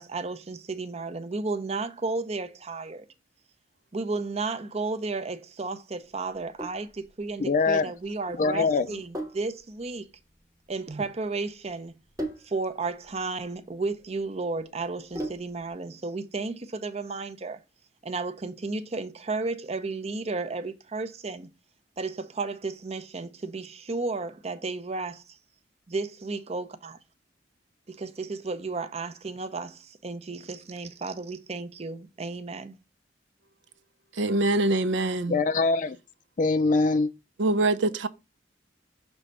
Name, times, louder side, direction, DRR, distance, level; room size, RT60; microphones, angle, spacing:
voice 1, 0.0-3.1 3.9-10.1 10.7-11.9 12.4-17.6 18.0-21.5 22.0-25.2 25.9-27.0 27.9-32.8, right 3 dB, 35° right, 0.6 m, -33 dB
Sink (filling or washing), 6.3-15.7, right 1 dB, 15° right, 1.1 m, -41 dB
voice 2, 7.4-7.9 8.4-8.9 35.3-36.0 36.4-37.1, left 3 dB, 45° left, 0.4 m, -23 dB
voice 3, 34.2-35.4 37.4-38.1, right 2 dB, 75° right, 0.6 m, -24 dB
6.2 x 3.3 x 5.3 m
head